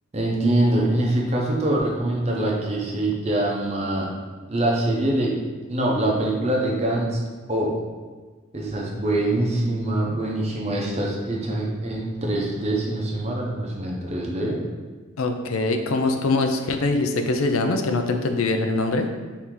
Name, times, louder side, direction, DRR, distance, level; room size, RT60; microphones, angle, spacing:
voice 1, 0.1-4.1 4.5-5.3 5.7-7.2 7.5-7.7 8.5-14.6, right 1 dB, 30° right, -2 dB, 0.6 m, -24 dB
voice 2, 15.2-19.1, left 3 dB, 90° left, 5 dB, 0.4 m, -23 dB
4.5 x 2.7 x 3.7 m, 1.4 s
head